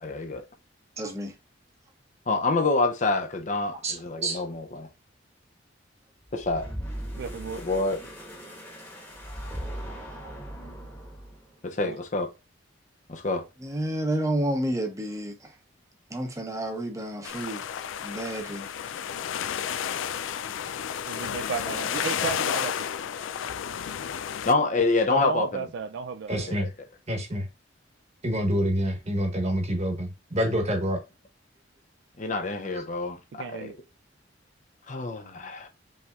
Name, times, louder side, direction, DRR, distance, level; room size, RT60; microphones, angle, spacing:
voice 1, 0.0-0.4 2.3-4.9 6.3-6.7 7.6-8.0 11.6-12.3 13.1-13.4 24.4-25.6 26.5-26.7 32.2-33.7 34.9-35.7, left 3 dB, 40° left, 0.6 m, -27 dB
voice 2, 1.0-1.3 13.6-15.3 16.1-17.6 18.0-18.7, right 1 dB, 15° right, 0.8 m, -30 dB
voice 3, 3.8-4.4 26.3-26.7 27.1-27.5 28.2-31.0, equal, 35° right, 1.2 m, -27 dB
sound 1, 6.3-11.5, equal, 10° left, 1.2 m, -39 dB
voice 4, 7.2-7.6 11.8-12.0 21.1-22.9 25.1-26.6 33.4-33.7, right 6 dB, 65° right, 0.3 m, -33 dB
sound 2, 17.2-24.5, left 8 dB, 90° left, 0.4 m, -32 dB
5.4 x 3.4 x 2.4 m
head